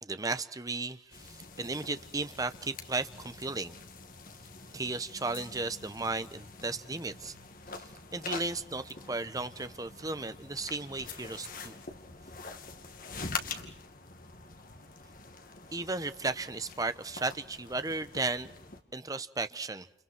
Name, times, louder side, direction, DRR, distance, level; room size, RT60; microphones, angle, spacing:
voice 1, 0.0-3.7 4.7-7.3 8.1-11.8 15.7-18.5 18.9-19.9, right 3 dB, 20° right, 1.0 m, -35 dB
sound 1, 1.1-18.8, left 4 dB, 50° left, 2.4 m, -45 dB
30.0 x 29.5 x 4.6 m
head